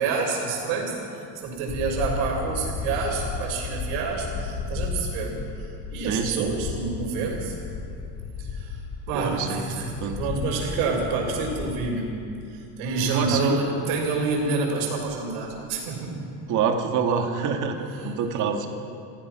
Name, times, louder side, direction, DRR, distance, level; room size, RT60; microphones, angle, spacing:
voice 1, 0.0-5.5 5.9-7.6 8.4-12.1 12.5-16.3 17.9-18.1, right 4 dB, 65° right, -7 dB, 5.5 m, -28 dB
sound 1, 1.7-11.9, left 4 dB, 35° left, 2.2 m, -34 dB
voice 2, 6.0-6.5 9.1-10.2 13.1-13.6 16.5-18.7, right 6 dB, 40° right, 4 dB, 2.3 m, -26 dB
29.0 x 15.5 x 6.2 m, 2.5 s
supercardioid pair, 150°, 46 cm